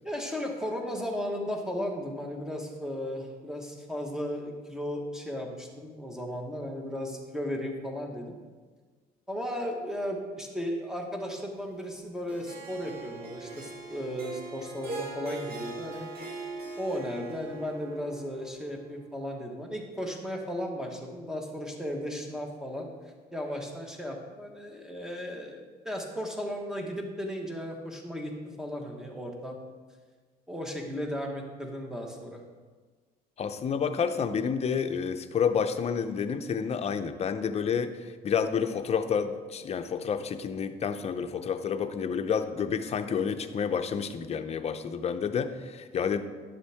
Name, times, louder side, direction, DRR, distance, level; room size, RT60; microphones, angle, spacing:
voice 1, 0.0-8.4 9.3-16.1 16.8-22.9 23.3-28.3 28.6-29.6 30.5-32.4, equal, 5° right, 1 dB, 1.4 m, -35 dB
Harp, 12.3-18.6, right 2 dB, 60° right, 2.0 m, -41 dB
voice 2, 33.4-46.2, left 6 dB, 40° left, 8 dB, 0.6 m, -29 dB
11.0 x 7.3 x 3.5 m, 1.4 s
cardioid pair, 110°, 17 cm